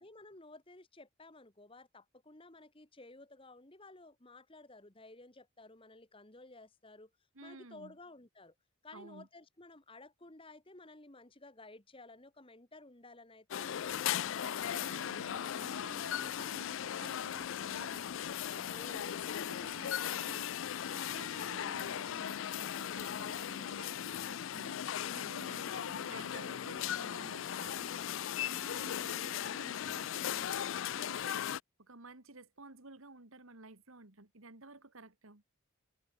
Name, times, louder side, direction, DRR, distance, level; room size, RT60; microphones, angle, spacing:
voice 1, 0.0-7.1 7.4-8.5 8.8-14.3 18.7-19.2, left 2 dB, 25° left, 1.6 m, -55 dB
voice 2, 7.3-8.0 8.9-9.3 14.4-18.1 18.5-30.6 31.0-31.5 31.8-35.4, right 2 dB, 70° right, 2.3 m, -53 dB
sound 1, 13.5-31.6, left 10 dB, 65° left, 0.4 m, -37 dB
sound 2, 15.1-21.3, equal, ahead, 5.1 m, -69 dB
head